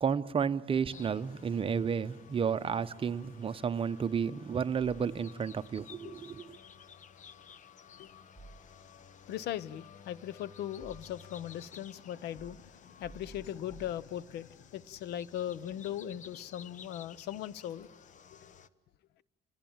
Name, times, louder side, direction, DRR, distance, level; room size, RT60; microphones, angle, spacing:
voice 1, 0.0-6.6, right 6 dB, 30° right, 0.9 m, -32 dB
sound 1, 0.9-18.7, left 7 dB, 45° left, 1.0 m, -55 dB
sound 2, 4.8-5.7 8.3-9.2 10.1-11.4 12.3-14.6, right 3 dB, 5° left, 1.8 m, -55 dB
voice 2, 9.3-17.9 18.3-18.5, left 11 dB, 80° left, 0.8 m, -39 dB
28.5 x 20.0 x 8.9 m
cardioid pair, 110°, 17 cm